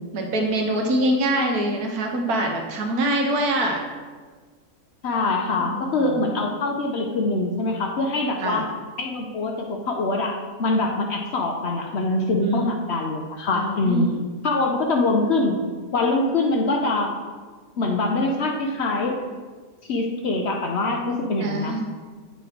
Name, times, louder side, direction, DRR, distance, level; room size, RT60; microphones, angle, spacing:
voice 1, 0.1-3.8 5.6-6.2 8.4-8.6 12.4-12.6 13.5-14.2 21.4-21.9, right 1 dB, 85° right, 2 dB, 1.4 m, -24 dB
voice 2, 5.0-8.7 9.0-14.1 14.4-15.6 15.9-17.1 17.8-19.2 19.9-21.7, left 2 dB, 60° left, 1 dB, 0.7 m, -24 dB
7.8 x 3.0 x 4.9 m, 1.4 s
omnidirectional pair, 1.6 m